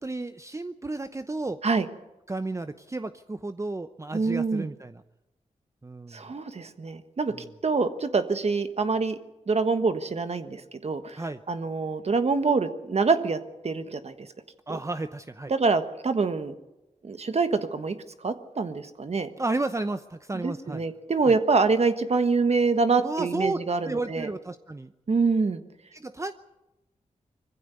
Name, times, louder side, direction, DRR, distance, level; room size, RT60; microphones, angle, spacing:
voice 1, 0.0-1.6 2.3-5.0 5.8-6.2 7.3-7.5 11.1-11.4 14.7-15.5 19.4-20.8 21.2-21.4 23.0-23.6 23.8-24.9 25.9-26.3, right 2 dB, 20° right, 10 dB, 0.8 m, -32 dB
voice 2, 4.1-4.7 6.1-7.3 7.6-9.1 9.5-13.4 13.6-14.1 15.5-16.5 17.0-19.3 20.3-24.3 25.1-25.6, right 4 dB, 55° right, 9 dB, 1.4 m, -25 dB
21.5 x 15.0 x 9.4 m, 0.97 s
cardioid pair, 60°, 13 cm